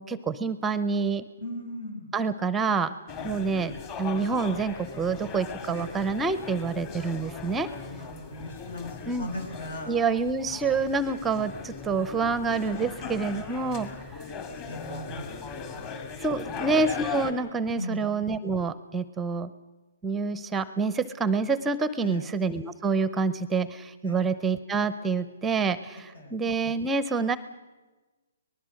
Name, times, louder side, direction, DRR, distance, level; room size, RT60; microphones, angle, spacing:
voice 1, 0.0-1.3 2.1-2.9 3.2-7.7 9.1-9.3 9.9-13.9 16.2-19.5 20.0-27.4, right 4 dB, 10° right, 15 dB, 0.6 m, -27 dB
voice 2, 1.4-2.1 3.2-3.9 5.7-5.9 7.8-9.9 12.2-12.9 13.3-14.2 14.7-15.3 15.7-16.5 17.7-18.1 22.0-22.2 24.0-24.3 26.1-26.3, left 1 dB, 80° left, 4 dB, 6.6 m, -40 dB
sound 1, 3.1-17.3, left 5 dB, 30° left, 2.0 m, -39 dB
24.5 x 19.5 x 6.4 m, 1.2 s
hypercardioid pair, 155°, 0 cm